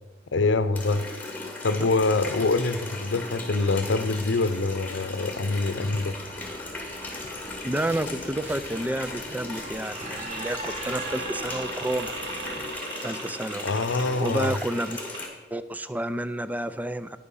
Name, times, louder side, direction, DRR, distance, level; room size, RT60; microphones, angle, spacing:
voice 1, 0.3-1.0 1.6-6.2 13.6-14.6, left 3 dB, 80° left, 12 dB, 0.7 m, -25 dB
Water tap faucet, 0.7-15.2, left 2 dB, 10° left, 2.2 m, -37 dB
sound 1, 5.9-12.7, right 2 dB, 35° right, 1.6 m, -42 dB
voice 2, 7.6-12.1 13.0-15.0 15.5-17.2, right 1 dB, 10° right, 12 dB, 0.4 m, -30 dB
sound 2, 10.3-14.5 14.8-15.2, right 2 dB, 70° right, 2.3 m, -37 dB
10.5 x 8.5 x 5.5 m, 1.2 s
head